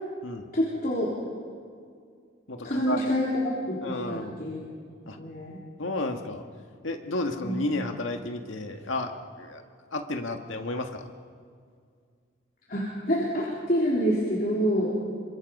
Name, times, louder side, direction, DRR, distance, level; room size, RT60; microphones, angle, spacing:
voice 1, 0.5-1.1 2.6-3.3 3.7-4.6 5.2-5.6 7.4-7.6 12.7-14.9, equal, 45° left, -6 dB, 3.7 m, -27 dB
voice 2, 2.5-3.0 3.8-4.4 5.1-5.2 5.8-6.4 6.8-9.1 9.4-9.6 9.9-11.1, left 2 dB, 80° left, 4 dB, 1.8 m, -32 dB
27.0 x 25.0 x 5.5 m, 2.2 s
head